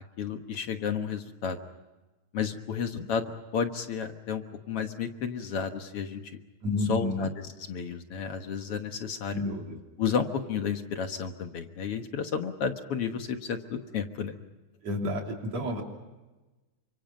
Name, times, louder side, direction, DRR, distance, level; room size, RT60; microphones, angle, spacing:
voice 1, 0.2-1.6 2.3-3.2 3.5-6.2 6.9-7.3 7.7-9.4 10.0-14.3, left 6 dB, 55° left, 6 dB, 2.1 m, -32 dB
voice 2, 6.6-7.3 9.3-9.8 14.8-15.8, left 1 dB, 60° right, 1 dB, 4.4 m, -30 dB
30.0 x 25.5 x 5.2 m, 1.1 s
omnidirectional pair, 3.4 m